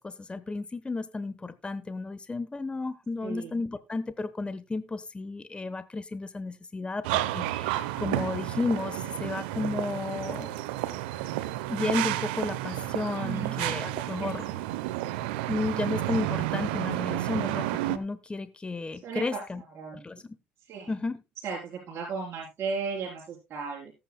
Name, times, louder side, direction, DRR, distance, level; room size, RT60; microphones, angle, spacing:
voice 1, 0.0-10.6 11.7-14.5 15.5-19.6 19.9-20.4 20.9-21.2, left 3 dB, 20° left, 1.0 m, -33 dB
voice 2, 3.2-3.6 13.1-13.6 14.2-14.6 19.0-20.1 20.7-20.9 21.4-23.9, right 5 dB, 50° right, 3.9 m, -36 dB
sound 1, 7.0-18.0, right 15 dB, 80° right, 0.8 m, -31 dB
19.0 x 9.0 x 2.2 m
hypercardioid pair, 65°, 5 cm